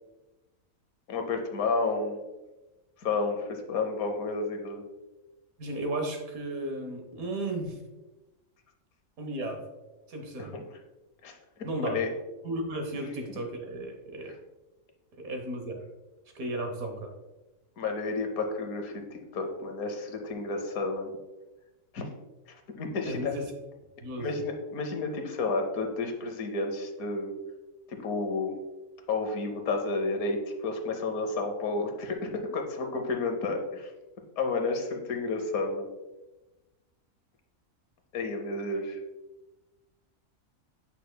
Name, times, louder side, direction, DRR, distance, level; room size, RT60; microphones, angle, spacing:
voice 1, 1.1-2.2 3.0-4.8 10.4-10.6 11.2-11.3 11.8-12.1 13.3-13.4 17.8-21.1 21.9-22.0 22.8-23.3 24.2-27.4 27.9-28.6 29.1-33.9 34.4-35.9 38.1-39.0, left 3 dB, 90° left, 4 dB, 1.4 m, -31 dB
voice 2, 5.6-7.8 9.2-9.6 10.1-10.5 11.6-12.0 12.4-14.3 15.1-15.8 16.3-17.1 23.1-23.4 24.0-24.3, right 1 dB, 85° right, 4 dB, 1.5 m, -34 dB
8.4 x 5.6 x 2.2 m, 1.1 s
omnidirectional pair, 1.5 m